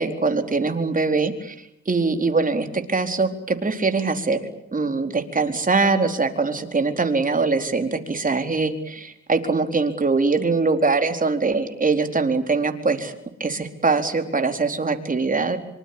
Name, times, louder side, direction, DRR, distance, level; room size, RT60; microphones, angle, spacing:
voice 1, 0.0-1.5 1.9-13.1 13.4-15.6, right 4 dB, 25° right, 6 dB, 4.3 m, -22 dB
25.5 x 25.5 x 8.7 m, 0.79 s
cardioid pair, 90°, 30 cm